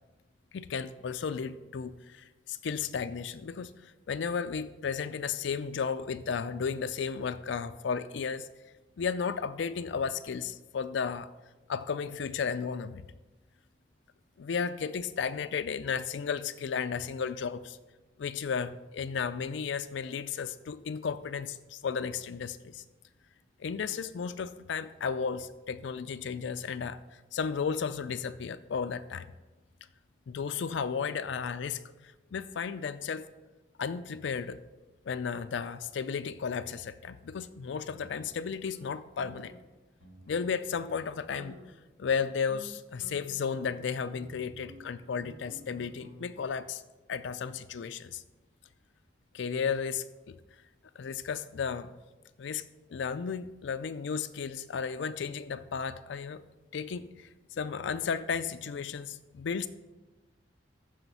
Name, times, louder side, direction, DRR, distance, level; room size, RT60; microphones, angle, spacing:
voice 1, 0.5-8.5 9.0-11.3 11.7-13.0 14.4-17.8 18.2-22.8 23.6-29.3 30.3-33.3 33.8-34.6 35.1-39.5 40.3-41.6 42.0-46.8 47.1-48.2 49.3-50.4 51.0-52.0 52.4-52.6 52.9-56.4 56.7-57.3 57.6-59.7, left 6 dB, 80° left, 11 dB, 0.4 m, -34 dB
sound 1, 37.8-38.9 39.2-39.6 40.0-40.6 40.8-41.0 41.4-41.8 42.2-46.5, equal, 80° right, 2.5 m, -52 dB
14.0 x 5.0 x 5.5 m, 1.2 s
head